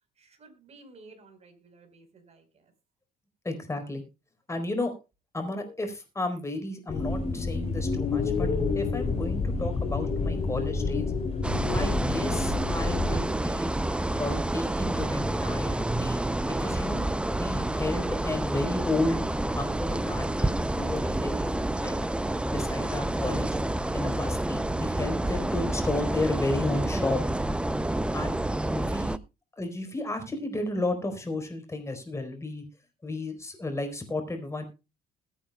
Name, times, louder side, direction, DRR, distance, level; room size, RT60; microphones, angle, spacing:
voice 1, 0.2-2.7, right 3 dB, 40° right, 6 dB, 4.5 m, -54 dB
voice 2, 3.4-4.0 4.5-4.9 5.3-8.5 8.7-11.1 11.7-13.7 14.2-17.0 17.3-19.2 19.6-22.0 22.5-23.5 23.9-27.2 28.1-28.4 28.7-29.2 29.6-32.6 33.0-34.6, left 2 dB, 15° left, 6 dB, 4.3 m, -32 dB
sound 1, 6.9-13.2, left 4 dB, 35° left, 3.6 m, -29 dB
sound 2, 11.4-29.2, right 1 dB, 5° right, 0.6 m, -29 dB
21.0 x 9.0 x 2.3 m, 0.28 s
cardioid pair, 110°, 17 cm